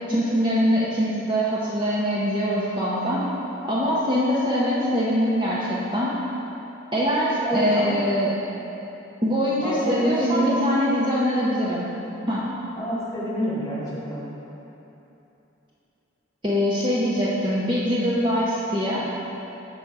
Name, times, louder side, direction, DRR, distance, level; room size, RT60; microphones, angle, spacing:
voice 1, 0.1-3.2 3.7-6.1 6.9-8.3 9.2-11.9 12.3-12.5 16.4-19.0, equal, 25° right, -7 dB, 0.7 m, -23 dB
voice 2, 7.4-8.0 9.6-10.6 12.8-14.3, right 1 dB, 15° left, -8 dB, 1.7 m, -26 dB
7.2 x 5.4 x 4.7 m, 3.0 s
head